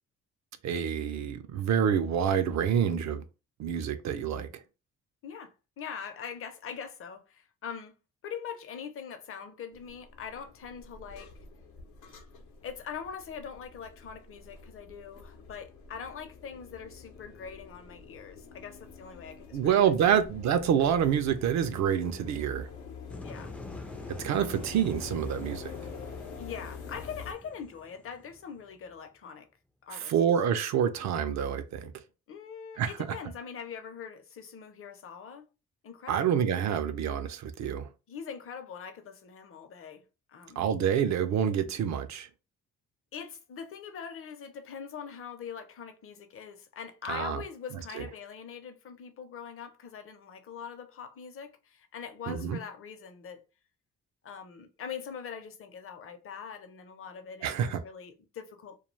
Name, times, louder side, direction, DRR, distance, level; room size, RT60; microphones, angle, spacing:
voice 1, 0.6-3.2 3.6-4.5 19.5-22.7 24.2-25.7 29.9-31.9 32.8-32.9 36.1-37.9 40.6-42.3 47.1-47.4 47.9-48.0 52.3-52.6 57.4-57.8, right 8 dB, 65° right, 0.5 m, -27 dB
voice 2, 5.2-7.9 8.2-11.3 12.6-20.2 23.2-23.5 24.3-24.6 26.4-29.5 29.8-30.1 32.3-35.5 35.8-36.4 38.1-40.0 40.3-40.7 43.1-53.4 54.2-58.8, left 7 dB, 45° left, 0.6 m, -42 dB
sound 1, 9.7-27.3, left 5 dB, 85° left, 0.7 m, -46 dB
sound 2, 23.1-29.0, left 1 dB, 5° left, 0.3 m, -47 dB
2.3 x 2.2 x 3.1 m
cardioid pair, 90°, 30 cm